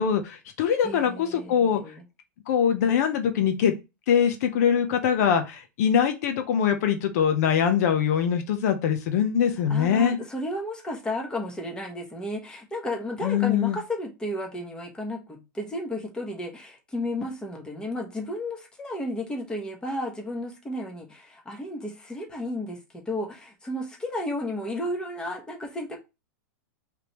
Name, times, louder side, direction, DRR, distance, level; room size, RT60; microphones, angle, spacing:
voice 1, 0.0-2.0 2.5-3.7 4.1-10.2 13.2-13.8, left 8 dB, 55° left, 0.8 m, -23 dB
voice 2, 0.8-2.0 9.7-26.0, left 1 dB, 10° left, 1.2 m, -33 dB
5.0 x 3.3 x 3.0 m
supercardioid pair, 150°, 10 cm